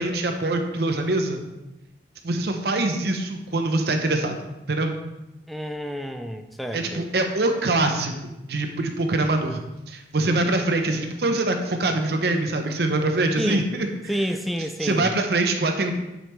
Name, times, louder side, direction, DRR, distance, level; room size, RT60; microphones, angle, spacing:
voice 1, 0.0-1.4 2.2-4.4 4.7-5.0 6.7-9.6 9.9-13.6 14.8-15.9, right 2 dB, 60° right, 5 dB, 0.7 m, -24 dB
voice 2, 5.5-7.1 13.4-13.7 14.1-15.1, equal, ahead, 6 dB, 0.4 m, -29 dB
9.0 x 5.2 x 3.2 m, 0.98 s
head